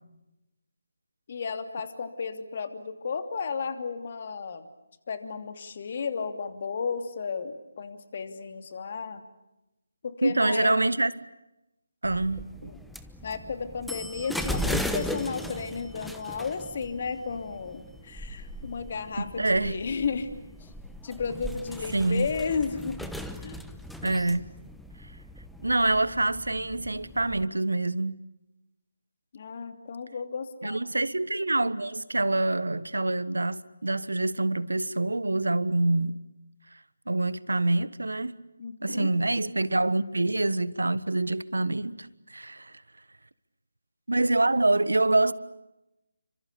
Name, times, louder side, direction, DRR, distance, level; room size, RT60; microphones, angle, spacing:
voice 1, 1.3-4.7 5.1-9.2 10.0-10.8 12.6-12.8 13.2-20.3 20.6-20.7 21.0-23.0 23.4-23.6 29.3-30.8 38.6-39.1, left 5 dB, 40° left, 2.9 m, -33 dB
voice 2, 10.2-11.1 12.0-12.7 19.2-19.8 21.9-22.3 24.0-24.4 25.6-28.2 30.6-36.2 37.1-38.4 38.8-42.7 44.1-45.3, right 2 dB, 85° right, 1.4 m, -26 dB
sound 1, 12.0-27.4, equal, ahead, 1.1 m, -38 dB
30.0 x 26.0 x 7.0 m
figure-of-eight pair, 160°, 0 cm